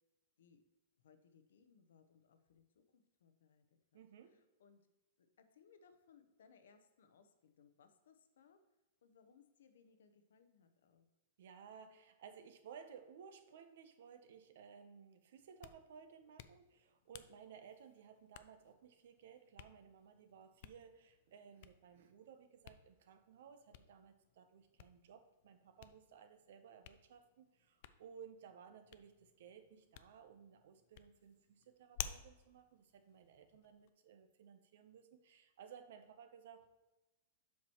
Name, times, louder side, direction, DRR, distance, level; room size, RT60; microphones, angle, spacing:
voice 1, 1.0-4.0 4.3-4.8 5.2-8.6 9.0-11.1, left 6 dB, 90° left, 9 dB, 0.8 m, -68 dB
voice 2, 3.9-4.4 11.4-36.7, right 7 dB, 60° right, 9 dB, 0.7 m, -58 dB
Hands, 15.4-33.9, left 11 dB, 45° left, 0.3 m, -56 dB
7.3 x 6.0 x 3.0 m, 1.1 s
supercardioid pair, 170°, 0 cm